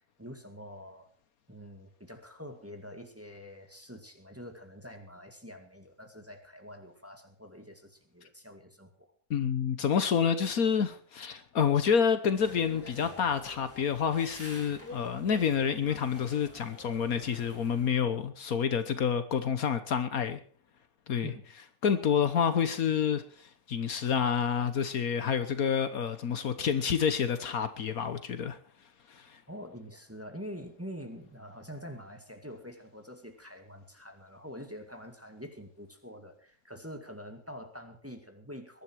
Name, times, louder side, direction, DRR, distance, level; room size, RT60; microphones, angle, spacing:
voice 1, 0.2-1.1 1.5-9.1 21.2-21.5 29.5-38.8, equal, 10° right, 1.9 m, -46 dB
voice 2, 9.3-20.4 21.1-21.3 21.8-28.6 29.1-29.4, left 7 dB, 65° left, 1.5 m, -28 dB
sound 1, 12.3-17.9, left 1 dB, 10° left, 4.5 m, -48 dB
21.5 x 11.5 x 4.6 m
omnidirectional pair, 1.7 m